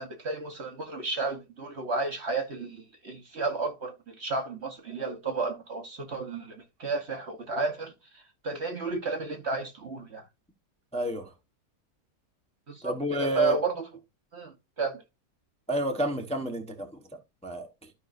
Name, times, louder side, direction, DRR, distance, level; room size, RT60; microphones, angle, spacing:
voice 1, 0.0-10.2 12.7-13.8 14.3-15.0, right 3 dB, 45° right, 1.2 m, -32 dB
voice 2, 10.9-11.3 12.8-13.6 15.7-17.0 17.4-17.9, right 1 dB, 5° left, 0.9 m, -30 dB
12.5 x 5.5 x 2.5 m
omnidirectional pair, 1.7 m